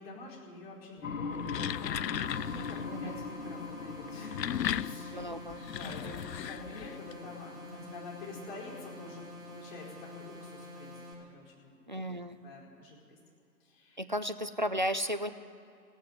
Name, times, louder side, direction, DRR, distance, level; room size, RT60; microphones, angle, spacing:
voice 1, 0.0-9.9 10.1-11.0 11.3-11.9 12.4-13.2 13.6-14.0, left 2 dB, 35° left, -3 dB, 4.7 m, -48 dB
sound 1, 1.0-10.6, left 5 dB, 55° left, 1.0 m, -43 dB
sound 2, 1.2-2.9 4.0-7.1, left 10 dB, 80° left, 0.5 m, -36 dB
sound 3, 2.1-11.1, left 1 dB, 10° right, 2.3 m, -48 dB
voice 2, 5.1-6.3 11.9-12.4 14.0-15.3, equal, 30° right, 10 dB, 0.4 m, -35 dB
16.0 x 9.2 x 9.7 m, 2.6 s
figure-of-eight pair, 135°, 49 cm